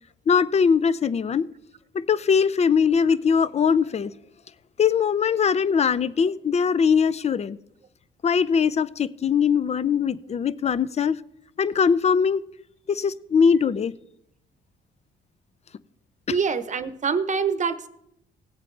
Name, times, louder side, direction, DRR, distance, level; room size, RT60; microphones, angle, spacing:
voice 1, 0.3-1.5 1.9-4.1 4.8-7.6 8.2-11.2 11.6-12.4 12.9-13.9, left 6 dB, 35° left, 0.5 m, -21 dB
voice 2, 16.3-17.9, right 5 dB, 40° right, 0.9 m, -25 dB
18.0 x 8.1 x 3.3 m
cardioid pair, 90°, 20 cm